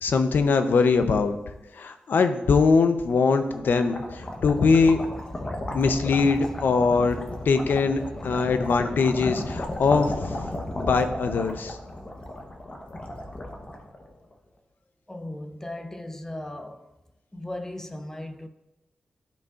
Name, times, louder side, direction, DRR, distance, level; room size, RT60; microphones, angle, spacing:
voice 1, 0.0-1.4 1.8-5.0 5.7-10.5 10.8-11.8, left 4 dB, 70° left, 0.6 m, -22 dB
sound 1, 3.2-14.3, left 1 dB, 30° left, 0.9 m, -34 dB
voice 2, 15.1-16.9 17.3-18.5, left 1 dB, 15° left, 0.5 m, -37 dB
12.0 x 5.0 x 2.4 m
wide cardioid pair, 110°, 3 cm